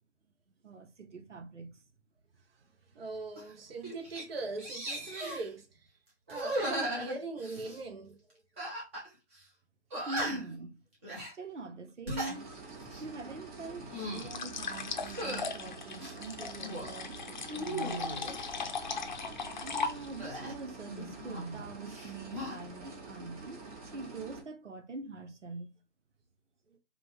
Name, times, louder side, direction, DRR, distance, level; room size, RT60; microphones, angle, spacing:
voice 1, 0.6-1.8 10.1-10.8 11.3-12.5 13.0-18.3 19.6-23.6 23.9-25.7, right 3 dB, 85° right, 1.0 m, -44 dB
voice 2, 2.9-5.7 6.3-8.2 19.2-19.3 19.7-19.8, right 3 dB, 55° right, 1.0 m, -41 dB
sound 1, 3.4-3.5 3.8-4.2 4.6-5.5 6.3-7.8 8.6-9.1 9.3-9.4 9.9-10.6 11.0-11.3 11.9-12.4 12.8-13.1 13.7-14.3 15.1-15.5 16.0-16.9 17.4-18.4 20.2-21.6 21.9-22.6, right 1 dB, 10° right, 0.7 m, -37 dB
sound 2, 12.3-24.4, right 3 dB, 30° right, 1.2 m, -47 dB
sound 3, 14.1-20.3, left 5 dB, 40° left, 0.7 m, -38 dB
5.0 x 2.4 x 3.2 m
figure-of-eight pair, 150°, 35 cm